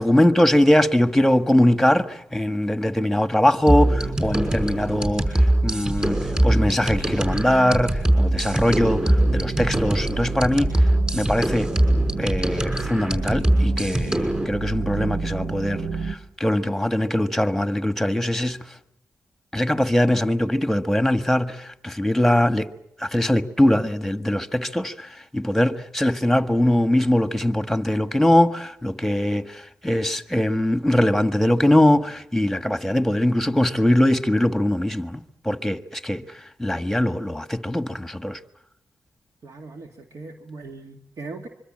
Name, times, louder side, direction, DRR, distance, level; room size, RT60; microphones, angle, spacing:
voice 1, 0.0-10.9 11.1-11.7 12.2-18.6 19.5-22.7 23.0-36.2 36.6-38.4, left 1 dB, 5° left, 1.5 m, -21 dB
sound 1, 3.7-14.4, right 1 dB, 15° right, 6.1 m, -22 dB
sound 2, 4.0-16.2, right 4 dB, 80° right, 1.9 m, -32 dB
voice 2, 39.4-41.5, right 3 dB, 60° right, 2.0 m, -39 dB
25.0 x 24.0 x 7.6 m
cardioid pair, 95°, 6 cm